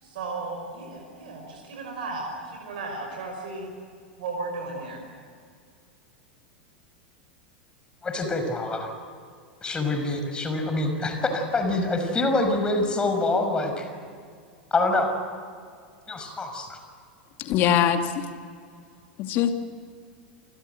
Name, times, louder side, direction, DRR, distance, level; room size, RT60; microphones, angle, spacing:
voice 1, 0.0-3.7 4.2-5.0, right 3 dB, 55° right, 1 dB, 5.7 m, -35 dB
voice 2, 8.0-8.9 9.6-13.9 14.7-15.2 16.1-16.8, left 2 dB, 15° left, 5 dB, 5.8 m, -25 dB
voice 3, 17.4-18.2 19.2-19.5, left 9 dB, 40° left, 6 dB, 2.6 m, -22 dB
29.5 x 25.0 x 8.1 m, 2.2 s
figure-of-eight pair, 85°, 5 cm